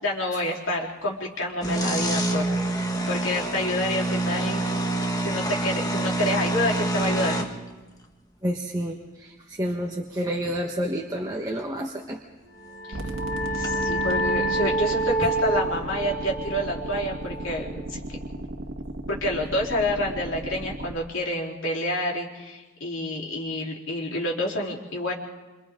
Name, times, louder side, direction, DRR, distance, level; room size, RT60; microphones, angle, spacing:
voice 1, 0.0-2.8 3.1-4.7 5.2-7.4 12.9-13.0 13.5-18.0 19.1-25.1, left 1 dB, 85° left, -2 dB, 3.9 m, -28 dB
sound 1, 1.4-7.6 11.2-11.3 11.6-11.7 13.6-13.8 14.1-14.2, right 1 dB, 20° left, 1.5 m, -26 dB
voice 2, 8.4-12.2, equal, 20° right, 0 dB, 1.3 m, -29 dB
sound 2, 12.6-17.9, right 2 dB, 45° left, 5.0 m, -28 dB
sound 3, 12.9-20.9, right 1 dB, 85° right, 1.7 m, -36 dB
27.5 x 26.5 x 3.8 m, 1.2 s
head